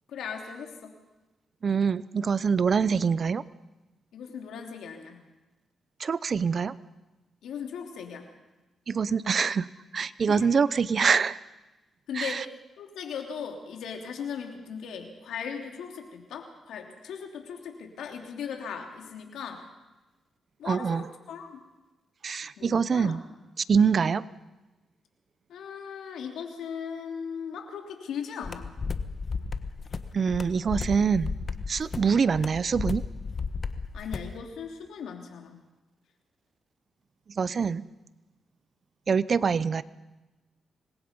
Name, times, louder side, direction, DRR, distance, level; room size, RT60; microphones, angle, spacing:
voice 1, 0.1-0.9 4.1-5.2 7.4-8.3 10.3-10.6 12.1-19.6 20.6-21.6 22.6-23.2 25.5-28.7 33.9-35.6 39.6-39.7, left 7 dB, 85° left, 3 dB, 3.2 m, -38 dB
voice 2, 1.6-3.4 6.0-6.7 8.9-9.7 9.9-11.4 12.1-12.4 20.7-21.0 22.2-23.2 23.7-24.3 30.1-31.3 31.7-33.0 37.4-37.8 39.1-39.8, right 6 dB, 50° right, 17 dB, 0.7 m, -25 dB
sound 1, 28.4-34.3, left 4 dB, 45° left, 1.3 m, -34 dB
26.0 x 20.5 x 5.4 m, 1.1 s
cardioid pair, 80°, 0 cm